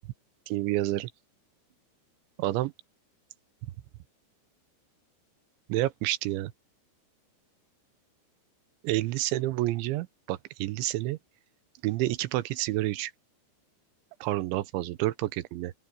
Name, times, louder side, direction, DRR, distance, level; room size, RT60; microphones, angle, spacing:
voice 1, 0.5-1.1 2.4-2.7 5.7-6.5 8.8-11.2 11.8-13.1 14.2-15.7, right 16 dB, 90° right, 3.1 m, -29 dB
open air
omnidirectional pair, 5.4 m